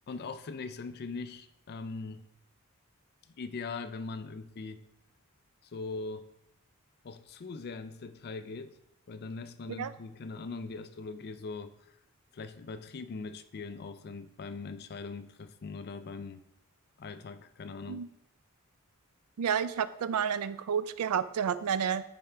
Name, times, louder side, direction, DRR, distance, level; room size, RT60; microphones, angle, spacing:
voice 1, 0.1-2.2 3.4-4.8 5.6-6.3 7.0-8.7 9.1-11.7 12.3-16.4 17.0-18.1, left 4 dB, 45° left, 11 dB, 0.4 m, -41 dB
voice 2, 19.4-22.0, right 7 dB, 80° right, 14 dB, 0.4 m, -30 dB
9.4 x 4.3 x 3.3 m, 0.84 s
head